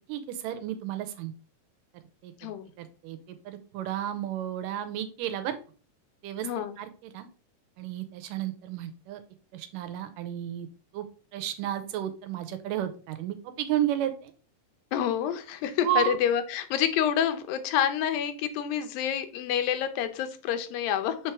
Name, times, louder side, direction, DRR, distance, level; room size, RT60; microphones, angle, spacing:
voice 1, 0.1-1.3 2.2-2.5 2.8-5.6 6.2-6.5 6.8-7.3 7.8-9.2 9.5-10.7 10.9-11.1 11.3-14.3 15.8-16.2, right 11 dB, 80° right, 9 dB, 2.2 m, -32 dB
voice 2, 6.4-6.8 14.9-21.3, left 9 dB, 90° left, 9 dB, 2.5 m, -28 dB
7.2 x 4.4 x 3.5 m, 0.38 s
omnidirectional pair, 4.0 m